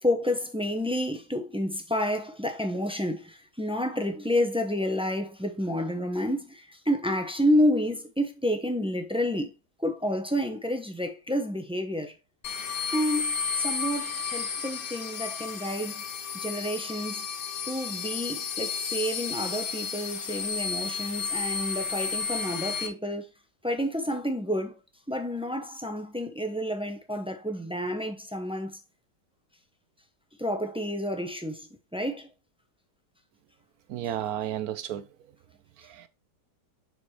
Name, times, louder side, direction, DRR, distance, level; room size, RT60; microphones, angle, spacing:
voice 1, 0.0-9.5 9.8-12.1 12.9-16.0 16.3-17.3 17.7-23.3 23.6-24.8 25.1-28.8 30.4-31.6 31.9-32.3, equal, 5° right, 0.7 m, -29 dB
sound 1, 12.4-22.9, left 6 dB, 60° left, 1.4 m, -32 dB
voice 2, 33.9-35.0 36.0-36.1, right 11 dB, 70° right, 1.0 m, -32 dB
7.1 x 6.2 x 3.3 m
omnidirectional pair, 1.9 m